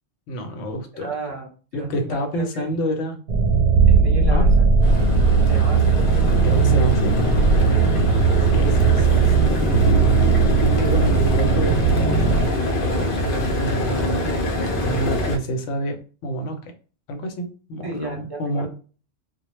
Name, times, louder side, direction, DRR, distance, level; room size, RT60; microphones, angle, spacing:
voice 1, 0.3-1.1 1.7-3.2 4.3-4.5 6.3-7.2 8.5-9.5 10.8-14.4 14.8-16.7 17.1-18.7, equal, 85° left, 5 dB, 0.9 m, -28 dB
voice 2, 0.9-2.6 3.9-4.5 5.5-6.6 7.7-7.9 8.6-8.8 17.8-18.7, right 2 dB, 25° right, 0 dB, 0.6 m, -34 dB
sound 1, 3.3-12.5, right 5 dB, 85° right, 0.9 m, -17 dB
sound 2, 4.8-15.4, left 1 dB, 60° left, 0.6 m, -25 dB
2.2 x 2.0 x 2.9 m, 0.37 s
omnidirectional pair, 1.2 m